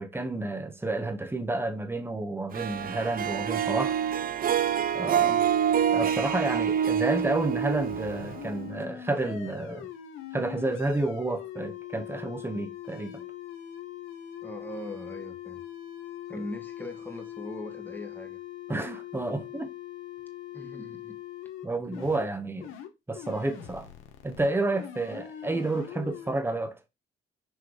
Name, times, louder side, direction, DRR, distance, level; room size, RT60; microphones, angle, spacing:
voice 1, 0.0-4.0 4.9-5.4 5.9-9.9 10.3-13.2 18.7-19.7 21.6-22.7 23.1-23.9 24.2-26.8, right 2 dB, 10° right, 1.2 m, -30 dB
Harp, 2.5-8.8, right 9 dB, 45° right, 0.5 m, -27 dB
sound 1, 7.8-21.7 21.9-22.3 22.6-22.9 23.1-26.3, left 11 dB, 90° left, 1.2 m, -42 dB
voice 2, 14.4-15.6 16.3-18.4 20.5-21.2, left 1 dB, 10° left, 1.4 m, -40 dB
6.4 x 3.2 x 4.8 m
cardioid pair, 90°, 20 cm